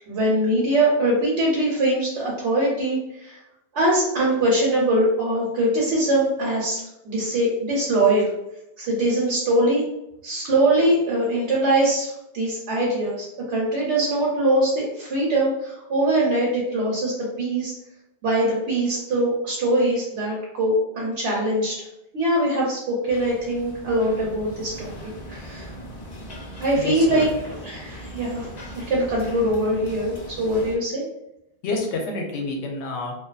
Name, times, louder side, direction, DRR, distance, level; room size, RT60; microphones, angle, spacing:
voice 1, 0.1-3.4 3.7-8.3 8.8-9.9 10.2-17.7 18.2-21.8 22.1-24.9 25.3-25.7 26.6-28.5 28.7-31.0, right 1 dB, 80° right, -4 dB, 0.9 m, -22 dB
sound 1, 23.1-30.8, equal, 50° left, 0.5 m, -39 dB
voice 2, 26.7-27.2 31.6-33.1, left 3 dB, 85° left, 1 dB, 0.9 m, -28 dB
2.5 x 2.2 x 2.3 m, 0.85 s
omnidirectional pair, 1.1 m